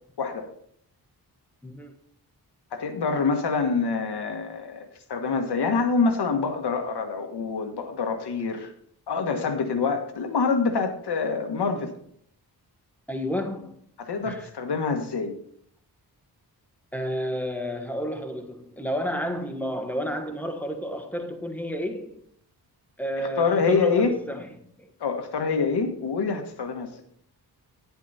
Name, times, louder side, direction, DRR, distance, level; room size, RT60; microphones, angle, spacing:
voice 1, 0.2-0.5 2.7-8.7 9.1-11.9 14.0-15.3 23.2-24.1 25.0-26.9, left 4 dB, 90° left, 1.5 m, -26 dB
voice 2, 1.6-1.9 13.1-13.7 14.2-14.5 16.9-22.2 23.0-24.9, equal, 5° left, 1.2 m, -31 dB
9.6 x 8.4 x 4.2 m
wide cardioid pair, 115°, 39 cm